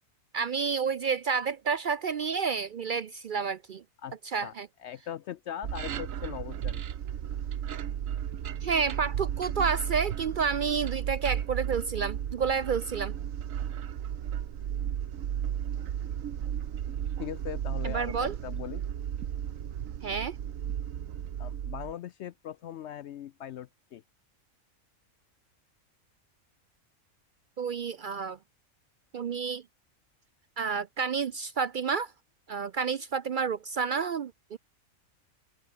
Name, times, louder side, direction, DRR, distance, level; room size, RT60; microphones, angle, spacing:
voice 1, 0.3-3.8 4.3-4.7 8.6-13.1 17.8-18.4 20.0-20.4 27.6-28.4 29.1-29.6 30.6-32.1 32.5-34.6, right 6 dB, 60° right, 0.5 m, -30 dB
voice 2, 4.8-6.8 17.2-18.8 21.4-24.0, left 10 dB, 65° left, 0.8 m, -40 dB
sound 1, 5.6-21.9, right 10 dB, 75° right, 1.3 m, -34 dB
omnidirectional pair, 1.4 m